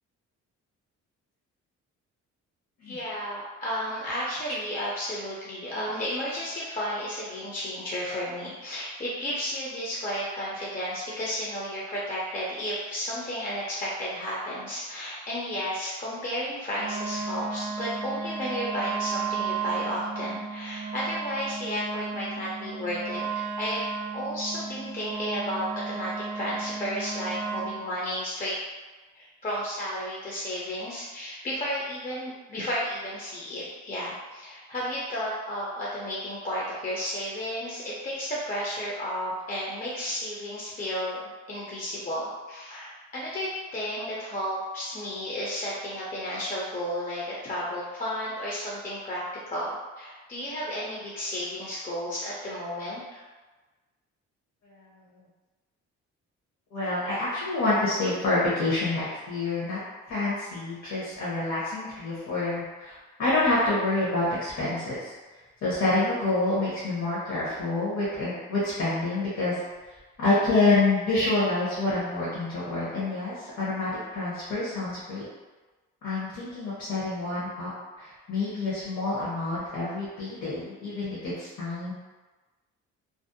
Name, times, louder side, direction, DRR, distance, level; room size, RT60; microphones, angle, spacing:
voice 1, 2.9-23.9 24.1-28.6 29.1-41.2 41.5-53.2, equal, 30° left, -6 dB, 0.5 m, -33 dB
Wind instrument woodwind instrument, 16.8-27.8, right 5 dB, 65° right, 0.5 m, -34 dB
voice 2, 56.7-59.8 60.1-65.1 65.6-69.6 70.2-75.2 76.0-77.7 78.0-81.9, left 2 dB, 55° left, -8 dB, 0.9 m, -27 dB
2.5 x 2.0 x 2.6 m, 1.2 s
cardioid pair, 90°, 30 cm